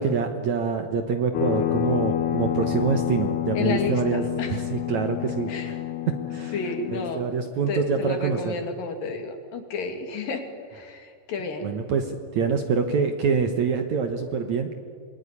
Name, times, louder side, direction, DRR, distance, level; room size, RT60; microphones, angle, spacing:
voice 1, 0.0-5.7 6.3-6.6 6.9-8.5 11.6-14.7, right 5 dB, 60° right, 6 dB, 2.1 m, -26 dB
sound 1, 1.3-7.1, left 12 dB, 80° left, 3.2 m, -28 dB
voice 2, 3.6-4.6 5.5-5.7 6.5-7.3 7.7-10.4 10.7-11.8, left 4 dB, 60° left, 5 dB, 3.9 m, -31 dB
27.5 x 21.0 x 9.9 m, 2.1 s
omnidirectional pair, 4.6 m